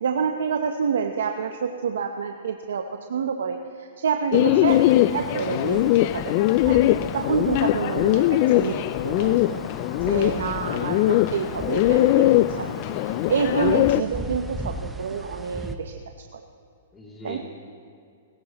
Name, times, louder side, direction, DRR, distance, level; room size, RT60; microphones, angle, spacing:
voice 1, 0.0-2.8 3.1-6.8 7.1-8.2 8.5-8.8 9.0-9.6 10.1-12.7 13.0-15.9 16.3-16.4 17.2-17.4, right 6 dB, 80° right, 5 dB, 0.8 m, -28 dB
Bird, 4.3-14.0, left 15 dB, 45° left, 0.3 m, -21 dB
sound 1, 4.7-15.8, right 2 dB, 5° right, 0.7 m, -39 dB
voice 2, 10.5-11.3 16.9-17.4, left 2 dB, 15° left, -2 dB, 2.8 m, -42 dB
18.0 x 15.5 x 3.0 m, 2.4 s
hypercardioid pair, 145°, 0 cm